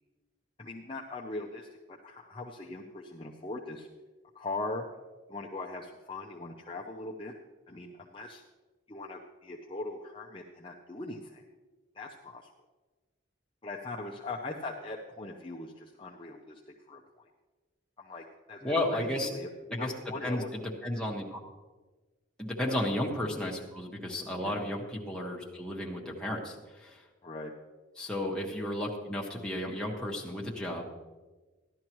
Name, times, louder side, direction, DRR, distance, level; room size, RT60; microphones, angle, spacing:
voice 1, 0.6-3.9 4.3-4.9 5.3-7.3 7.7-8.4 8.9-11.4 11.9-12.5 13.6-17.2 18.0-20.6 22.6-22.8 24.4-24.6 27.2-27.5, left 2 dB, 25° left, -1 dB, 0.6 m, -41 dB
voice 2, 18.6-19.3 19.7-19.9 20.2-21.4 22.4-27.0 28.0-30.9, left 1 dB, 5° left, -2 dB, 1.5 m, -33 dB
15.0 x 11.5 x 3.1 m, 1.3 s
head